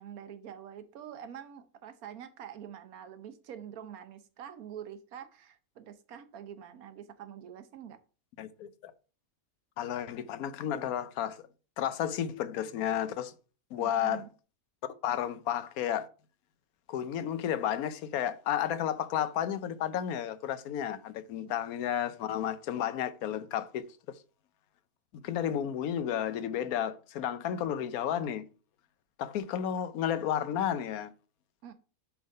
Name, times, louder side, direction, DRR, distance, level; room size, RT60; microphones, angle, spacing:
voice 1, 0.0-8.0 13.8-14.3 15.2-15.3 21.4-21.5 31.6-31.7, right 9 dB, 75° right, 1.2 m, -46 dB
voice 2, 8.4-8.9 9.8-11.4 11.8-13.3 13.7-14.2 15.0-16.1 16.9-24.2 25.1-28.4 29.2-31.1, left 10 dB, 80° left, 1.1 m, -32 dB
7.2 x 3.6 x 5.3 m
omnidirectional pair, 1.5 m